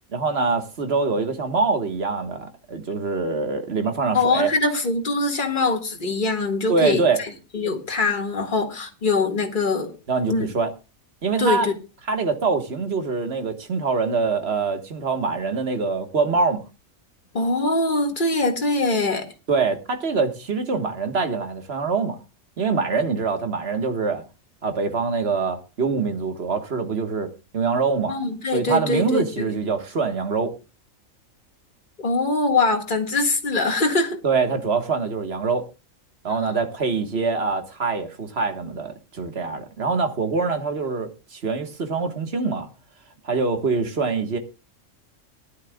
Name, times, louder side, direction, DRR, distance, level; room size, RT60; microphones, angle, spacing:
voice 1, 0.1-4.5 6.7-7.2 10.1-10.7 11.2-11.7 12.1-16.6 19.5-22.2 22.6-24.2 24.6-27.3 27.5-28.1 28.5-30.5 34.2-35.7 36.2-42.7 43.2-44.4, right 4 dB, 55° right, 1.7 m, -24 dB
voice 2, 4.1-9.9 10.3-10.5 11.4-11.7 17.3-19.3 28.1-29.5 32.0-34.2 36.4-36.5, left 3 dB, 40° left, 2.0 m, -23 dB
19.5 x 11.5 x 2.3 m
omnidirectional pair, 1.3 m